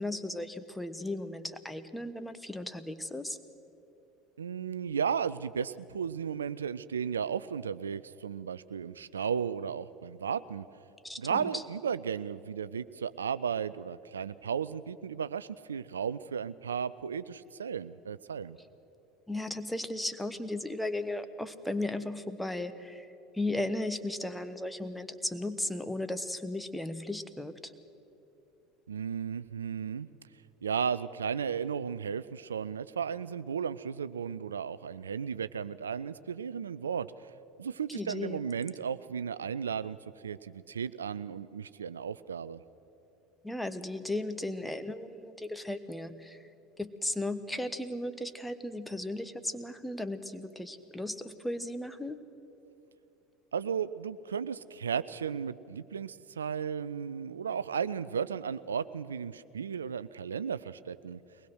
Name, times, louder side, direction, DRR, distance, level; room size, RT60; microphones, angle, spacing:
voice 1, 0.0-3.4 11.0-11.6 19.3-23.1 23.3-27.7 37.9-38.4 43.4-46.4 46.8-52.2, left 1 dB, 5° left, 10 dB, 1.1 m, -36 dB
voice 2, 4.4-10.7 11.2-18.6 28.9-30.1 30.6-37.3 37.6-40.0 40.2-42.6 53.5-61.2, right 7 dB, 80° right, 15 dB, 0.4 m, -34 dB
22.5 x 19.5 x 6.3 m, 3.0 s
figure-of-eight pair, 70°, 0 cm